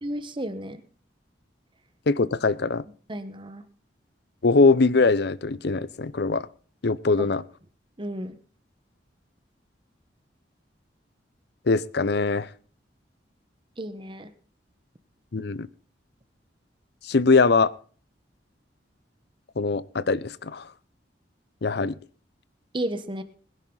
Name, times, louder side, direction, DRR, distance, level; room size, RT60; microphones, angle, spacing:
voice 1, 0.0-0.8 3.1-3.6 7.2-7.3 8.0-8.4 13.8-14.3 22.7-23.2, right 1 dB, 25° right, 10 dB, 1.2 m, -32 dB
voice 2, 2.1-2.8 4.4-6.5 6.8-7.4 11.7-12.5 15.3-15.7 17.0-17.7 19.6-20.7 21.6-22.0, left 3 dB, 60° left, 18 dB, 0.7 m, -22 dB
21.0 x 10.5 x 3.9 m, 0.41 s
head